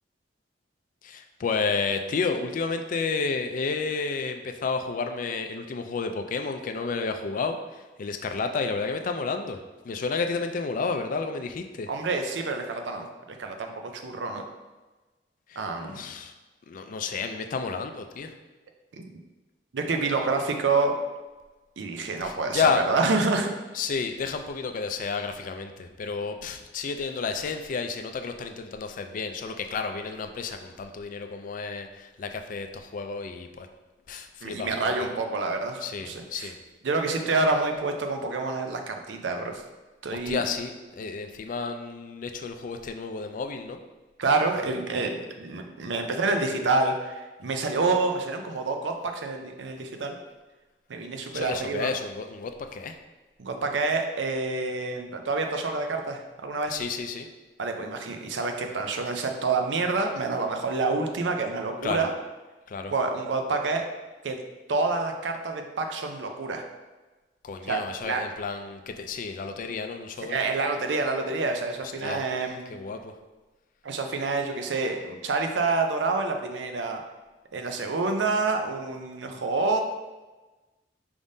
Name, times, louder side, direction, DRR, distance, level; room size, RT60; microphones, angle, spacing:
voice 1, 1.0-9.6 9.8-11.9 15.5-16.3 16.7-18.3 22.2-22.8 23.7-33.7 34.1-34.9 35.8-36.6 40.3-43.8 51.3-53.0 56.7-57.3 61.8-62.1 62.7-62.9 67.4-70.4 72.0-72.2 72.7-73.1, left 4 dB, 50° left, 6 dB, 0.4 m, -31 dB
voice 2, 11.9-14.4 15.6-16.0 18.9-19.1 19.7-21.0 21.8-23.5 34.4-36.5 36.8-39.6 40.0-40.4 44.2-50.2 50.9-51.9 53.4-56.7 57.6-62.1 62.9-63.9 64.2-64.4 64.7-66.6 67.7-68.3 70.3-72.6 73.8-77.0 77.5-79.8, right 3 dB, 90° right, 4 dB, 0.5 m, -28 dB
5.0 x 3.5 x 2.6 m, 1.2 s
head